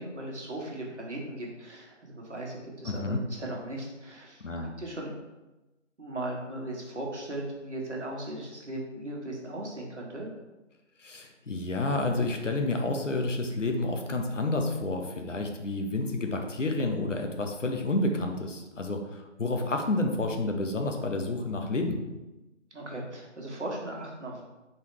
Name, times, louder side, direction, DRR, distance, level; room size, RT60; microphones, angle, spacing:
voice 1, 0.0-5.2 6.0-10.3 22.7-24.4, right 1 dB, 65° right, -2 dB, 1.4 m, -38 dB
voice 2, 2.8-3.2 4.4-4.7 11.0-22.0, left 2 dB, 75° left, 3 dB, 0.9 m, -30 dB
4.0 x 3.9 x 3.2 m, 1.1 s
figure-of-eight pair, 175°, 38 cm